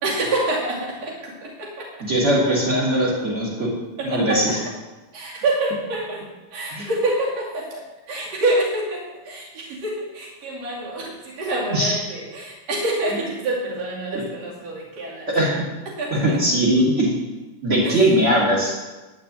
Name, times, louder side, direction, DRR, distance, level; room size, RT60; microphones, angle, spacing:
voice 1, 0.0-1.9 4.0-4.4 5.1-6.2 6.5-15.3 15.9-16.4 17.8-18.0, right 2 dB, 50° right, -4 dB, 3.4 m, -27 dB
voice 2, 2.1-3.7 4.0-4.6 6.7-6.9 11.7-12.0 13.1-13.2 14.1-14.2 15.3-15.6 16.1-17.1 17.6-18.8, right 1 dB, 20° right, -4 dB, 2.8 m, -20 dB
11.5 x 5.2 x 8.6 m, 1.2 s
omnidirectional pair, 3.9 m